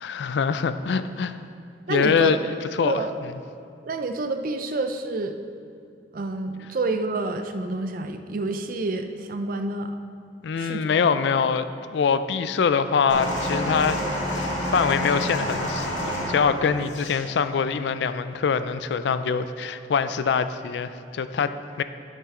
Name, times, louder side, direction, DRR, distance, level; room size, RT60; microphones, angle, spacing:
voice 1, 0.0-1.4 1.9-2.4 2.8-3.0 10.4-14.0 14.3-21.8, left 6 dB, 70° left, 12 dB, 0.3 m, -24 dB
voice 2, 1.9-2.4 2.8-3.1 3.8-5.4 6.1-10.0 10.6-11.0, right 2 dB, 50° right, 7 dB, 0.5 m, -28 dB
sound 1, 13.1-17.2 18.1-18.2, equal, 85° left, 2.1 m, -28 dB
9.8 x 6.6 x 3.7 m, 2.5 s
head